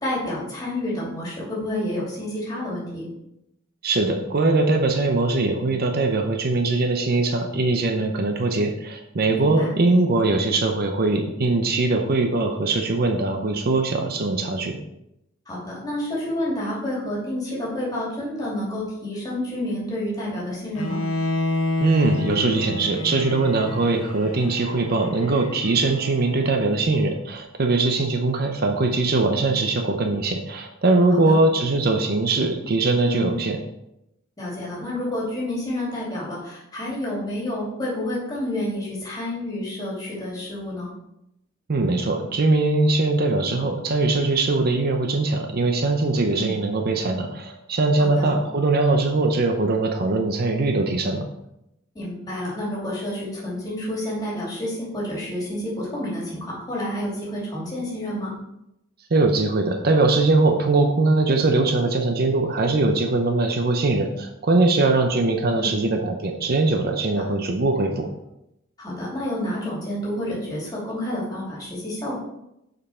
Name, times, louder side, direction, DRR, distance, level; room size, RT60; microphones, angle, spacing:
voice 1, 0.0-3.1 9.3-9.7 15.5-21.0 31.1-31.4 33.0-33.4 34.4-40.9 46.3-46.6 48.0-48.4 51.9-58.4 65.5-65.8 67.2-67.4 68.8-72.2, left 1 dB, 20° left, -6 dB, 2.7 m, -29 dB
voice 2, 3.8-14.8 21.8-33.6 41.7-51.3 59.1-68.1, right 3 dB, 45° right, 5 dB, 0.6 m, -21 dB
Bowed string instrument, 20.7-26.8, left 2 dB, 80° left, 0.8 m, -29 dB
6.8 x 5.4 x 4.3 m, 0.84 s
head